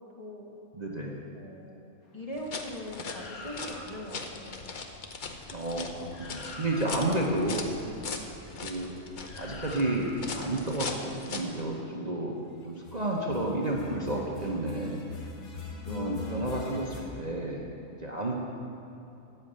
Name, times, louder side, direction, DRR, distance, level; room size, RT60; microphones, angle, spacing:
voice 1, 0.2-0.6 1.3-1.8 2.1-4.6 7.0-7.4 15.8-16.5, left 1 dB, 25° left, -3 dB, 1.3 m, -41 dB
voice 2, 0.8-1.2 5.5-7.6 8.6-9.0 9.3-12.3 12.6-15.0 15.9-17.6 18.0-18.3, right 1 dB, 30° right, -3 dB, 1.1 m, -31 dB
sound 1, 2.3-11.6, left 4 dB, 45° left, 0.8 m, -40 dB
sound 2, 3.0-4.1 5.8-5.9 6.1-7.3 9.2-10.4 12.7-17.0, left 4 dB, 85° left, 1.8 m, -43 dB
13.5 x 5.6 x 8.7 m, 2.9 s
omnidirectional pair, 1.5 m